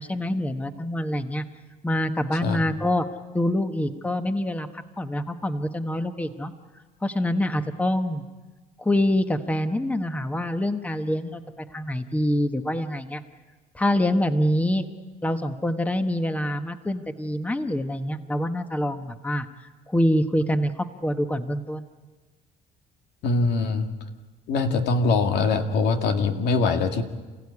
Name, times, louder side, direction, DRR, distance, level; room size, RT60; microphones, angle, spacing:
voice 1, 0.0-1.4 1.8-3.1 3.3-6.5 7.0-8.2 8.8-13.2 13.7-14.9 15.2-19.5 19.9-21.9, left 1 dB, 10° left, 8 dB, 1.3 m, -25 dB
voice 2, 23.2-23.9 24.5-27.0, left 4 dB, 80° left, 5 dB, 2.1 m, -22 dB
28.5 x 16.0 x 9.8 m, 1.3 s
cardioid pair, 110°, 17 cm